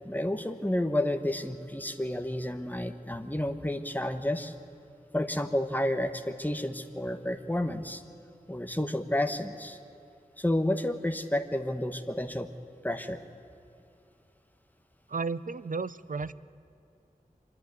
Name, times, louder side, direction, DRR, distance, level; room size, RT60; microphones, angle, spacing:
voice 1, 0.0-4.5 5.1-8.0 8.5-9.8 10.4-12.5 12.8-13.2, left 1 dB, 10° left, 7 dB, 1.2 m, -30 dB
voice 2, 15.1-16.3, right 4 dB, 60° right, 17 dB, 0.5 m, -33 dB
26.0 x 11.0 x 9.5 m, 2.6 s
wide cardioid pair, 45°, 15 cm